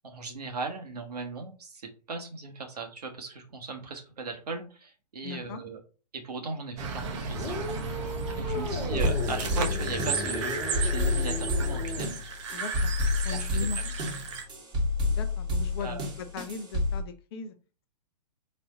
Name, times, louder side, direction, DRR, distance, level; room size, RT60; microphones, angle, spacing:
voice 1, 0.0-5.8 6.1-8.0 8.3-12.2 13.3-13.8 15.8-16.0, right 3 dB, 65° right, 3 dB, 1.2 m, -38 dB
voice 2, 5.2-5.6 8.5-8.8 12.5-12.9 13.2-13.8 15.1-17.6, left 5 dB, 35° left, 9 dB, 0.5 m, -39 dB
sound 1, 6.8-14.4, right 4 dB, 45° right, 0.9 m, -34 dB
sound 2, 7.3-12.1, left 1 dB, 10° left, 1.3 m, -35 dB
sound 3, 9.0-17.0, left 3 dB, 20° right, 1.1 m, -29 dB
4.2 x 2.6 x 3.8 m, 0.35 s
figure-of-eight pair, 115°, 21 cm